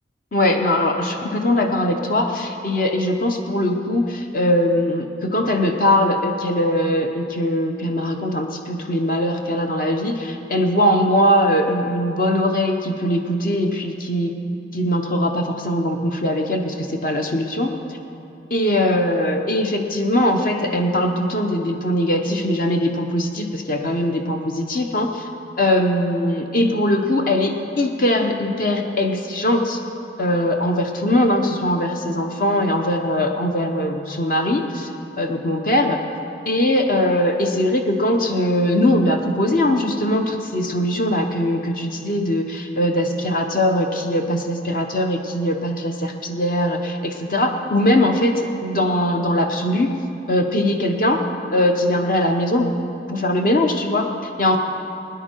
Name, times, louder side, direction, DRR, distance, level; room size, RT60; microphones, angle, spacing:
voice 1, 0.3-14.3 14.7-18.0 18.5-25.3 25.6-29.8 30.2-34.9 35.2-36.0 36.5-50.0 50.3-51.2 51.5-52.7 53.1-54.1 54.4-54.6, left 1 dB, 50° left, 3 dB, 0.8 m, -21 dB
21.5 x 10.0 x 4.5 m, 2.7 s
head